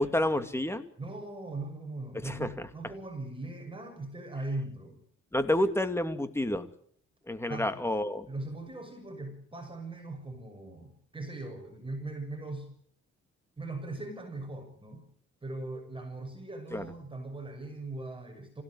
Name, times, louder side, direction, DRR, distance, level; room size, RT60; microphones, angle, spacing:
voice 1, 0.0-0.8 2.2-2.5 5.3-6.7 7.3-8.3 16.7-16.9, left 1 dB, 10° left, 9 dB, 2.7 m, -29 dB
voice 2, 1.0-5.0 7.5-7.7 8.3-12.7 13.6-15.1 15.4-18.6, right 2 dB, 15° right, 5 dB, 6.6 m, -40 dB
26.5 x 17.0 x 9.8 m, 0.63 s
cardioid pair, 90°, 30 cm